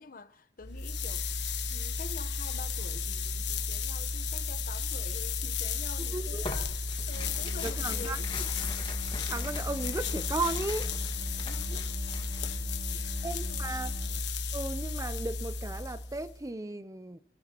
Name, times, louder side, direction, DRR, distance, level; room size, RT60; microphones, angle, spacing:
voice 1, 0.0-8.3 11.4-12.0 12.4-12.7 12.9-13.7, left 3 dB, 50° left, 1.0 m, -48 dB
sound 1, 0.6-16.4, left 4 dB, 85° left, 1.2 m, -33 dB
voice 2, 6.1-6.4 7.6-8.2 9.3-10.9 12.9-13.9 14.5-17.2, right 2 dB, 20° right, 0.6 m, -35 dB
Tearing, 6.4-12.6, left 3 dB, 30° left, 1.6 m, -42 dB
sound 2, 7.1-14.2, left 1 dB, 70° right, 2.4 m, -44 dB
30.0 x 15.0 x 3.0 m
head